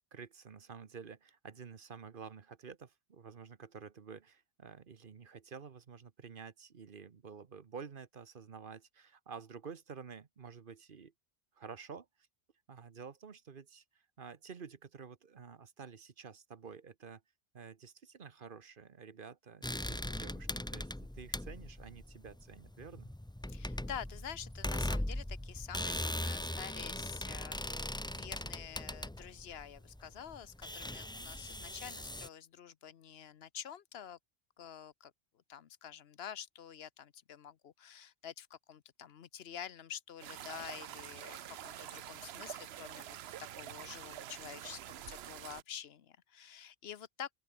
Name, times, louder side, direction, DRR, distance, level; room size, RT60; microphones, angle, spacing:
voice 1, 0.1-11.1 11.5-12.3 12.7-17.2 17.5-23.1, right 6 dB, 55° right, 1.2 m, -50 dB
sound 1, 19.6-32.3, left 1 dB, 5° left, 0.5 m, -40 dB
voice 2, 23.5-34.2 34.6-35.1 35.5-43.2 43.6-47.3, left 9 dB, 70° left, 1.0 m, -48 dB
sound 2, 40.2-45.6, right 12 dB, 75° right, 0.9 m, -47 dB
open air
omnidirectional pair, 1.1 m